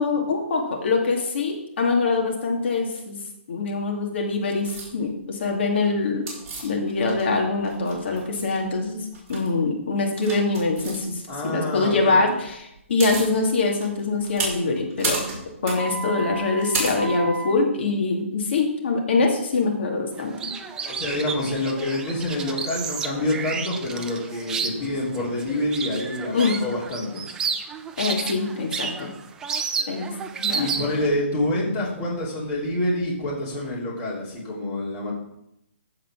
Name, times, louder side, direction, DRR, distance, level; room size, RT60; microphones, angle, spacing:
voice 1, 0.0-3.2 3.5-6.3 6.6-15.2 15.6-20.5 26.3-26.6 28.0-29.1 29.9-30.1 30.4-30.7, left 3 dB, 55° left, 0 dB, 2.5 m, -24 dB
sound 1, 4.6-4.9 6.3-7.4 7.6-8.6 9.1-9.5 10.2-11.0 12.5-12.6 12.8-13.3 13.8-17.5, right 3 dB, 25° right, 4.3 m, -31 dB
voice 2, 11.3-12.2 20.8-27.2 30.6-35.1, left 1 dB, 20° left, -6 dB, 3.2 m, -27 dB
sound 2, 20.2-31.1, right 5 dB, 10° right, 0.5 m, -31 dB
14.5 x 4.8 x 6.2 m, 0.82 s
hypercardioid pair, 165°, 7 cm